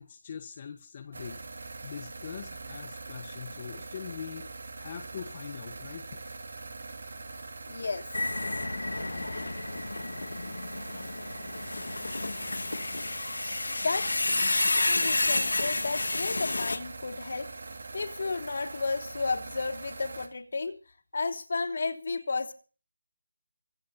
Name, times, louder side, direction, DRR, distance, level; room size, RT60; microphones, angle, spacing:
voice 1, 0.0-4.5 4.8-6.2, left 7 dB, 35° left, 7 dB, 1.3 m, -42 dB
sound 1, 1.1-20.3, right 3 dB, 65° right, 3.5 m, -43 dB
voice 2, 7.7-8.1 13.6-14.5 14.8-17.5 17.9-20.8 21.1-22.5, left 3 dB, 60° left, 4 dB, 3.1 m, -33 dB
sound 2, 8.1-16.8, left 2 dB, 80° left, 2.2 m, -30 dB
25.0 x 9.7 x 4.2 m, 0.38 s
figure-of-eight pair, 160°, 0 cm